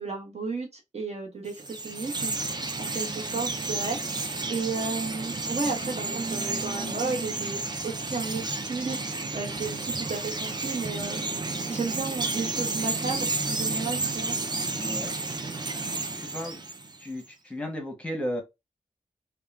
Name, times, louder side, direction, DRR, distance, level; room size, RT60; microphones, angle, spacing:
voice 1, 0.0-2.4 2.8-11.2 11.7-14.4, right 4 dB, 50° right, 1.1 m, -33 dB
Chirp tweet, 1.5-17.1, right 3 dB, 30° right, 0.4 m, -31 dB
voice 2, 14.8-15.2 15.8-16.6 17.0-18.4, equal, 10° left, 1.0 m, -35 dB
3.6 x 2.3 x 2.3 m
wide cardioid pair, 80°, 14 cm